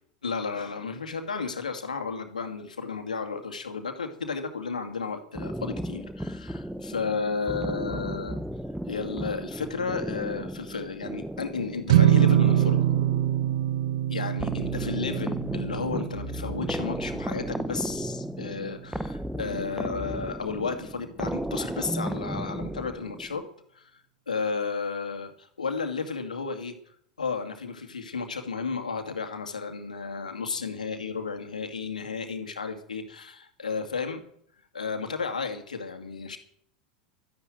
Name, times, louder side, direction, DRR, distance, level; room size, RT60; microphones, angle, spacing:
voice 1, 0.2-8.4 8.9-12.9 14.1-23.5 23.7-24.0 24.3-26.8 27.2-34.2 34.7-36.4, left 5 dB, 85° left, 6 dB, 2.3 m, -33 dB
sound 1, 5.3-23.5, right 1 dB, 5° right, 0.8 m, -35 dB
sound 2, 11.9-18.3, right 12 dB, 65° right, 0.8 m, -25 dB
13.0 x 10.5 x 9.1 m, 0.66 s
figure-of-eight pair, 85°, 4 cm